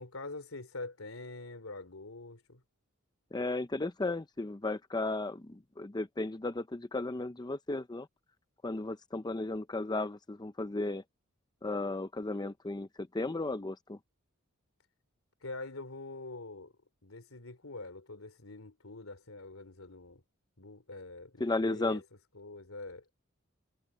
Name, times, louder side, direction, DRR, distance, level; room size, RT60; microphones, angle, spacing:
voice 1, 0.0-2.6 15.4-16.7 17.0-20.2 20.6-22.0 22.3-23.0, left 2 dB, 85° left, 3.1 m, -45 dB
voice 2, 3.3-8.1 8.6-11.0 11.6-14.0 21.4-22.0, left 2 dB, 20° left, 0.6 m, -34 dB
head